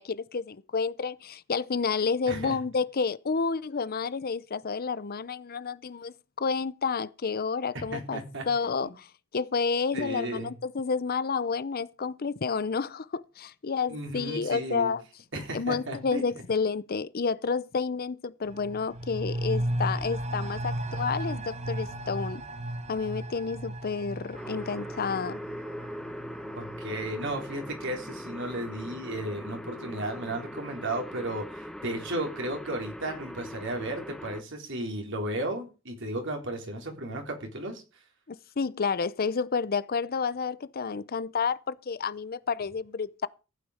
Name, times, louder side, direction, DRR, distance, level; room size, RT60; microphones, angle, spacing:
voice 1, 0.0-9.1 9.3-15.0 15.5-22.4 22.9-25.4 38.3-43.3, left 5 dB, 45° left, 0.6 m, -30 dB
voice 2, 2.3-2.6 7.9-8.4 9.9-10.5 13.9-14.9 15.3-16.4 26.5-37.8, right 1 dB, 65° right, 3.9 m, -34 dB
sound 1, 18.4-27.9 28.2-28.3, right 1 dB, 35° right, 1.5 m, -35 dB
sound 2, 24.3-34.4, equal, ahead, 1.0 m, -41 dB
15.0 x 9.3 x 5.0 m
head